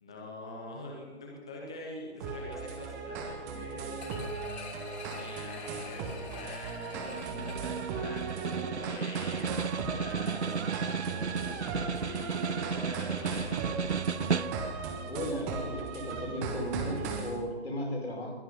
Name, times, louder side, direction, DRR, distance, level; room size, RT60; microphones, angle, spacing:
voice 1, 0.0-4.2 4.8-10.6 11.0-13.6, left 1 dB, 5° left, -1 dB, 0.5 m, -45 dB
sound 1, 2.2-17.4, right 4 dB, 15° right, 1.3 m, -38 dB
sound 2, 4.0-8.8 9.2-9.3, left 4 dB, 40° left, 3.2 m, -46 dB
Snare drum, 6.9-14.9, right 6 dB, 90° right, 0.6 m, -34 dB
voice 2, 15.0-18.3, equal, 75° left, -2 dB, 5.6 m, -36 dB
21.0 x 11.5 x 5.5 m, 1.3 s
figure-of-eight pair, 145°, 33 cm